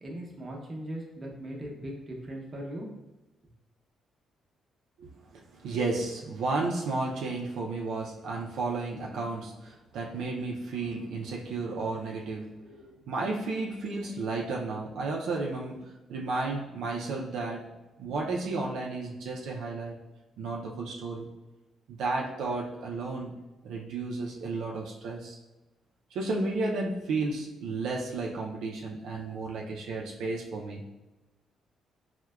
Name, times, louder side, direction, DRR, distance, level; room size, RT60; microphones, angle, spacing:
voice 1, 0.0-2.9, right 1 dB, 35° right, -1 dB, 0.7 m, -39 dB
voice 2, 5.0-17.7 18.0-20.0 20.4-21.3 21.9-25.4 26.1-30.9, right 3 dB, 80° right, -2 dB, 0.4 m, -33 dB
4.5 x 2.1 x 2.2 m, 1.1 s
cardioid pair, 90°, 0 cm